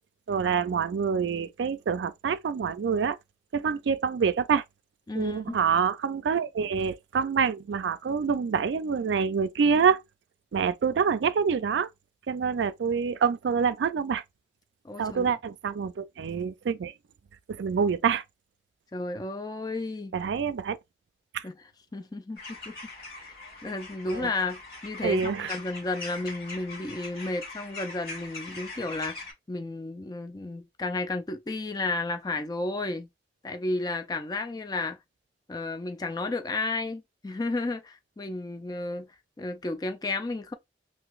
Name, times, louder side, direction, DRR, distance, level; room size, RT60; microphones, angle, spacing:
voice 1, 0.3-3.2 3.5-4.6 5.1-10.0 10.5-11.9 12.3-14.2 15.0-16.9 17.5-18.2 20.1-20.8 21.3-21.4 24.1-24.3 25.0-25.5, right 6 dB, 80° right, 0.4 m, -26 dB
voice 2, 5.1-5.6 14.8-15.3 18.9-20.2 21.4-21.6 21.9-22.8 23.2-23.3 23.6-29.1 29.5-33.1 33.4-35.0 35.5-39.1 39.4-40.5, left 2 dB, 20° left, 0.3 m, -32 dB
Group of jackdaw, 22.4-29.3, left 3 dB, 60° left, 1.7 m, -42 dB
3.9 x 2.5 x 2.4 m
head